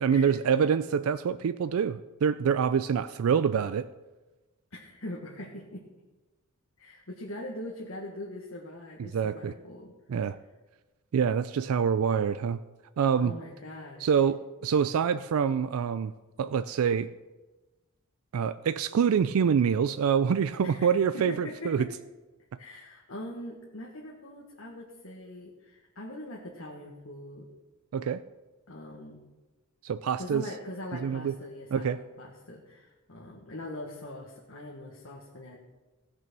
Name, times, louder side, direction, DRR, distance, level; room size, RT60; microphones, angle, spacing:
voice 1, 0.0-3.9 9.0-9.5 10.1-10.4 11.1-12.6 13.0-13.4 14.0-16.1 16.4-17.1 18.3-21.9 27.9-28.2 29.8-30.5 31.0-31.3 31.7-32.0, right 7 dB, 85° right, 13 dB, 0.4 m, -26 dB
voice 2, 4.7-5.8 6.8-9.9 13.2-14.1 20.6-21.9 22.6-27.5 28.7-29.2 30.2-35.6, left 1 dB, 75° left, -2 dB, 1.6 m, -42 dB
16.5 x 6.1 x 6.1 m, 1.2 s
head